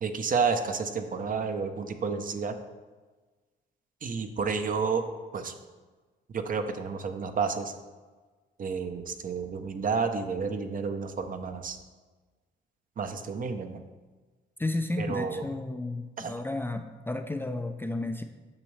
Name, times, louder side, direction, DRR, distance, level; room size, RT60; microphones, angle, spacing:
voice 1, 0.0-2.5 4.0-5.0 5.3-5.5 6.3-7.7 8.6-11.8 13.0-13.8 15.0-15.4 16.2-16.3, right 5 dB, 45° right, 7 dB, 0.7 m, -30 dB
voice 2, 14.6-18.2, left 2 dB, 10° left, 5 dB, 0.4 m, -32 dB
8.7 x 6.0 x 3.2 m, 1.3 s
cardioid pair, 90°, 20 cm